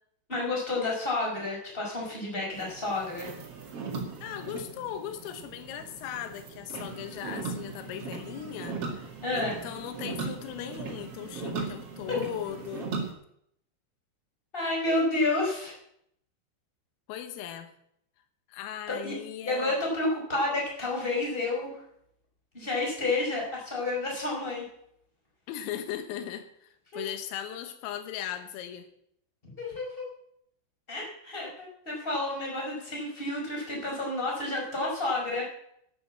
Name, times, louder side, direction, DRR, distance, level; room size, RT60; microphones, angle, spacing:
voice 1, 0.3-3.3 9.2-9.6 12.1-12.2 14.5-15.7 18.9-19.2 19.4-21.8 22.5-24.6 26.9-27.0 29.4-30.1 30.9-35.4, left 2 dB, 10° left, -2 dB, 5.1 m, -30 dB
sound 1, 2.5-13.1, right 4 dB, 45° right, 2.0 m, -38 dB
voice 2, 4.2-12.9 17.1-17.7 18.5-19.8 25.5-28.9, left 10 dB, 90° left, 8 dB, 3.9 m, -38 dB
12.0 x 9.6 x 7.6 m, 0.72 s
omnidirectional pair, 5.8 m